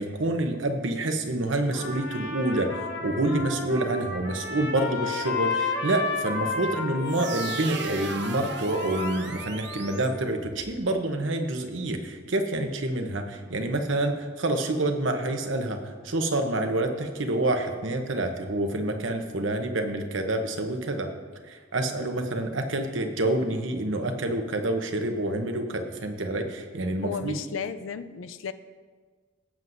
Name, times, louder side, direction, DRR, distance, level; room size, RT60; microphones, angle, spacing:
voice 1, 0.0-21.1 21.5-27.4, right 1 dB, 75° right, 5 dB, 1.0 m, -27 dB
Trumpet, 1.7-10.2, left 4 dB, 60° left, 1.2 m, -33 dB
sound 1, 7.0-10.8, right 6 dB, 55° right, 0.5 m, -39 dB
voice 2, 27.0-28.5, left 6 dB, 85° left, 12 dB, 0.5 m, -34 dB
16.5 x 7.7 x 2.7 m, 1.5 s
head